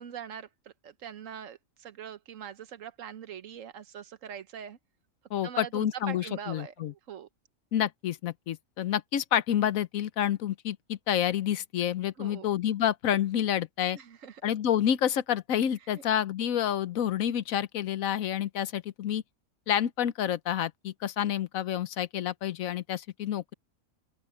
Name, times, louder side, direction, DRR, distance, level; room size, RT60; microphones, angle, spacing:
voice 1, 0.0-4.8 5.4-7.3 12.2-12.5 13.9-14.4 15.9-16.0, right 8 dB, 70° right, 1.3 m, -42 dB
voice 2, 5.3-6.9 7.7-14.0 14.4-19.2 19.7-23.5, left 10 dB, 80° left, 1.2 m, -29 dB
open air
omnidirectional pair, 1.4 m